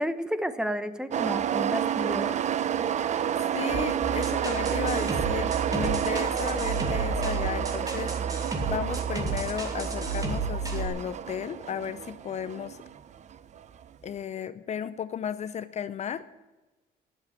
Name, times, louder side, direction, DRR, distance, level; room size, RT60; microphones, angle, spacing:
voice 1, 0.0-2.3, equal, 5° right, 11 dB, 0.9 m, -31 dB
sound 1, 1.1-13.8, right 9 dB, 45° right, 0.7 m, -30 dB
voice 2, 3.5-8.1 8.6-12.8 14.0-16.4, left 8 dB, 40° left, 14 dB, 0.6 m, -34 dB
sound 2, 4.0-10.9, right 4 dB, 20° right, 2.5 m, -32 dB
12.0 x 7.4 x 9.8 m, 1.1 s
cardioid pair, 110°, 17 cm